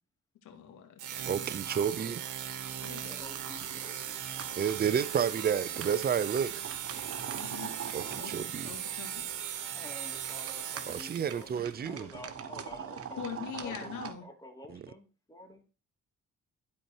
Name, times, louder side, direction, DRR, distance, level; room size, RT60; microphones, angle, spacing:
voice 1, 0.4-1.5 2.8-3.2 7.3-7.7 8.2-8.3 8.7-9.3 13.2-14.2, left 8 dB, 85° left, 2.3 m, -42 dB
sound 1, 1.0-11.5, right 9 dB, 80° right, 1.5 m, -38 dB
voice 2, 1.3-2.2 4.6-6.5 7.9-8.7 10.9-12.1, right 8 dB, 30° right, 0.6 m, -30 dB
voice 3, 2.8-5.2 9.7-11.5 11.8-15.6, left 1 dB, 10° left, 2.9 m, -50 dB
sound 2, 2.8-14.1, right 7 dB, 50° right, 1.2 m, -45 dB
12.0 x 4.5 x 4.6 m
cardioid pair, 90°, 30 cm